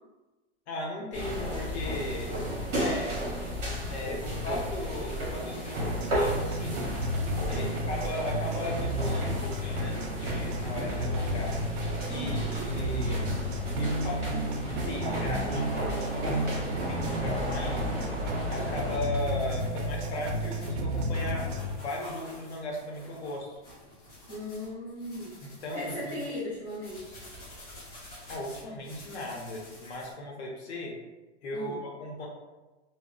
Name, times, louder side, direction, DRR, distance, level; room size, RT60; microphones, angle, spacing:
voice 1, 0.7-2.4 2.7-3.3 3.9-6.9 7.5-11.6 12.1-13.4 13.8-17.9 18.5-23.6 25.4-26.2 28.3-31.0 31.4-32.3, left 1 dB, 65° left, -1 dB, 0.8 m, -37 dB
sound 1, 1.1-19.0, equal, 35° right, 1.0 m, -35 dB
sound 2, 5.8-21.8, equal, 75° right, 0.6 m, -32 dB
voice 2, 12.1-12.6 24.3-25.3 25.7-27.2 31.5-31.8, left 1 dB, 5° left, -17 dB, 0.5 m, -37 dB
sound 3, 19.1-30.1, left 1 dB, 30° left, 0.9 m, -49 dB
2.1 x 2.0 x 3.7 m, 1.2 s
supercardioid pair, 180°, 36 cm